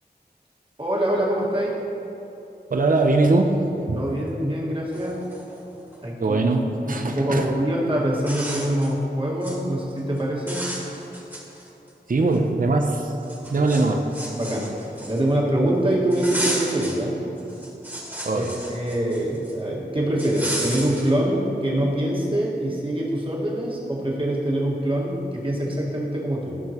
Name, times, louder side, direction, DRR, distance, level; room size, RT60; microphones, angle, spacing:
voice 1, 0.8-1.8 4.0-5.2 6.0-6.4 6.8-10.7 13.5-13.7 14.4-17.2 18.3-26.6, right 1 dB, 30° right, -5 dB, 1.7 m, -24 dB
voice 2, 2.7-3.6 3.9-4.0 6.2-7.5 12.1-13.1 13.5-14.0 18.2-18.5, right 2 dB, 55° right, 3 dB, 0.6 m, -21 dB
sound 1, 4.9-6.0 7.5-7.6 8.1-8.9 9.3-9.6 10.0-10.2 10.5-11.9 12.3-12.4 13.2-15.4 16.1-17.0 17.4-19.5 20.2-21.1, equal, 10° right, 1.8 m, -33 dB
13.5 x 5.7 x 3.0 m, 3.0 s
wide cardioid pair, 70°, 17 cm